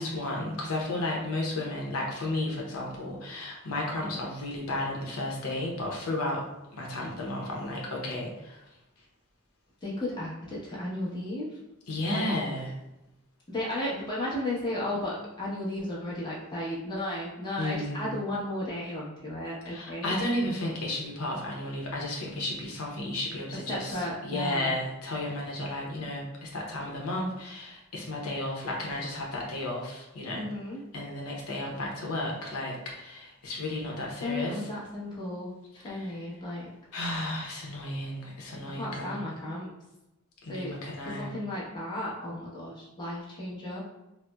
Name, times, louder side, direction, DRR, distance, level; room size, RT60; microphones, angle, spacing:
voice 1, 0.0-6.4 6.7-8.6 11.9-12.7 17.6-18.1 19.7-30.4 30.9-34.6 35.9-36.1 36.9-39.2 40.4-41.3, left 1 dB, 85° left, -2 dB, 0.7 m, -33 dB
voice 2, 9.8-11.6 12.1-12.4 13.5-20.2 23.7-24.7 30.3-30.8 34.2-36.7 38.7-39.7 40.5-40.7 41.0-43.8, left 1 dB, 20° left, -7 dB, 0.9 m, -34 dB
4.0 x 2.0 x 2.2 m, 0.97 s
head